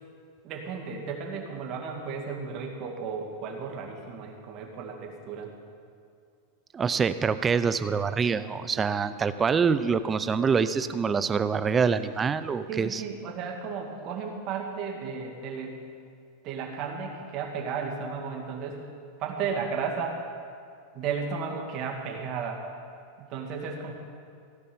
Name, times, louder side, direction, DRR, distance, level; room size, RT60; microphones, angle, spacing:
voice 1, 0.4-5.5 12.7-15.8 16.4-18.8 19.2-20.2 20.9-22.6 23.2-23.9, right 5 dB, 40° right, 1 dB, 2.2 m, -34 dB
voice 2, 6.7-13.0, right 5 dB, 20° right, 13 dB, 0.5 m, -25 dB
16.5 x 5.6 x 9.4 m, 2.4 s
supercardioid pair, 140°, 0 cm